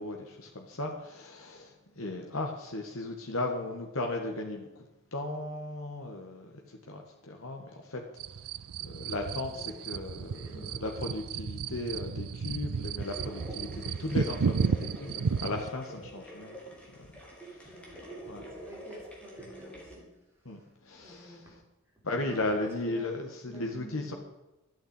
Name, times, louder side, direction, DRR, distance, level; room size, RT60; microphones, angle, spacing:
voice 1, 0.0-4.7 5.1-8.0 8.8-16.6 16.9-17.1 17.4-17.8 18.3-18.4 20.4-21.6 22.0-24.1, left 2 dB, 70° left, 2 dB, 1.7 m, -36 dB
sound 1, 8.2-15.7, right 5 dB, 85° right, 0.5 m, -33 dB
voice 2, 9.5-9.8 10.3-10.9 17.7-20.2 20.4-20.7 20.9-21.6 22.1-23.2 23.5-24.2, right 2 dB, 10° right, -4 dB, 4.2 m, -50 dB
sound 2, 13.0-20.0, equal, 5° left, 3.1 m, -46 dB
12.5 x 9.1 x 8.3 m, 0.99 s
head